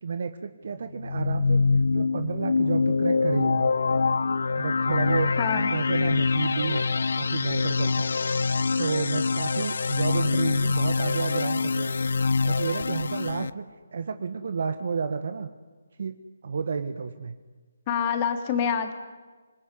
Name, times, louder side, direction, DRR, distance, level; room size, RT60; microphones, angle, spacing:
voice 1, 0.0-1.6 1.9-3.7 4.5-6.8 7.1-8.2 8.8-11.9 12.4-13.6 13.9-15.5 16.0-16.1 16.4-17.3, right 5 dB, 60° right, 9 dB, 1.6 m, -31 dB
sound 1, 1.0-13.5, left 4 dB, 65° left, 0.9 m, -25 dB
voice 2, 5.4-5.7 17.9-18.9, left 7 dB, 30° left, 7 dB, 3.1 m, -26 dB
27.5 x 19.5 x 10.0 m, 1.4 s
figure-of-eight pair, 155°, 0 cm